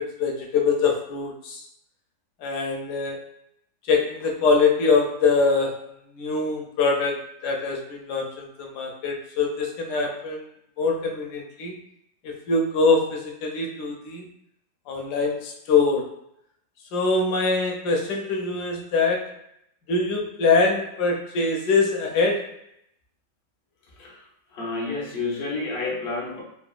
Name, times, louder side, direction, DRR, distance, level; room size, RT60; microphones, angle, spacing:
voice 1, 0.0-1.6 2.4-3.2 3.8-5.8 6.2-10.5 10.8-11.8 12.2-14.3 14.9-16.1 16.9-19.4 19.9-22.5, left 4 dB, 75° left, 1 dB, 1.1 m, -23 dB
voice 2, 24.5-26.4, left 3 dB, 90° left, -2 dB, 0.4 m, -29 dB
3.7 x 2.1 x 2.3 m, 0.75 s
omnidirectional pair, 1.9 m